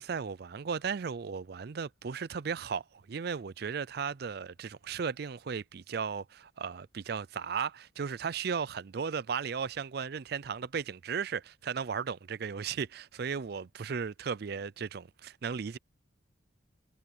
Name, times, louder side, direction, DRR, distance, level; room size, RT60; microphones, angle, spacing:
voice 1, 0.0-2.8 3.1-15.8, right 6 dB, 55° right, 0.4 m, -35 dB
head